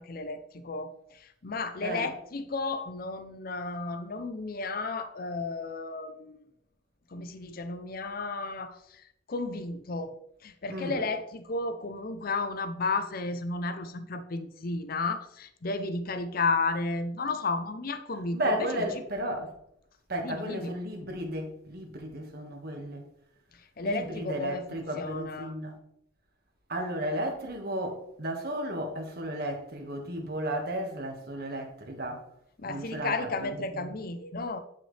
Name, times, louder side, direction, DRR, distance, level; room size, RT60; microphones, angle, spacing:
voice 1, 0.0-6.4 7.1-18.9 20.2-20.7 23.8-25.5 32.6-34.6, left 3 dB, 50° left, 0.6 m, -33 dB
voice 2, 1.8-2.1 10.7-10.9 18.3-19.5 20.1-23.0 23.8-25.8 26.7-32.2 32.7-34.0, equal, 55° right, 1.7 m, -34 dB
9.8 x 5.9 x 3.3 m
head